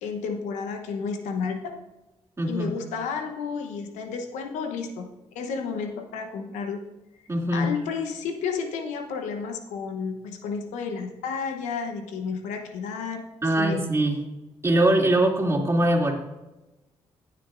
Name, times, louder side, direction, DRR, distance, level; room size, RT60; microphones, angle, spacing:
voice 1, 0.0-1.8 2.5-6.8 7.5-13.2 13.6-13.8, left 5 dB, 85° left, 6 dB, 0.9 m, -31 dB
voice 2, 2.4-2.7 7.3-7.7 13.4-14.2 14.6-16.1, right 1 dB, 20° right, -1 dB, 2.6 m, -22 dB
15.5 x 7.8 x 2.5 m, 1.0 s
supercardioid pair, 50°, 12 cm